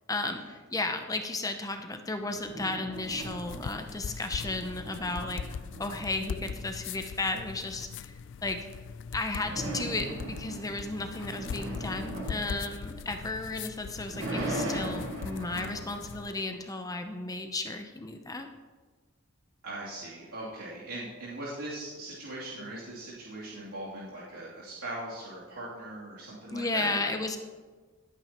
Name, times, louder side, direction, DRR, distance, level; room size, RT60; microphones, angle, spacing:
voice 1, 0.1-8.7 9.1-18.5 26.5-27.4, left 2 dB, 15° left, 6 dB, 0.6 m, -34 dB
sound 1, 2.2-3.9 4.2-7.0 9.3-13.4 13.8-16.9, right 1 dB, 60° right, 2.8 m, -39 dB
sound 2, 2.9-16.4, left 6 dB, 55° left, 0.3 m, -41 dB
voice 2, 19.6-27.1, right 2 dB, 90° right, -9 dB, 3.0 m, -40 dB
17.5 x 8.9 x 3.0 m, 1.4 s
head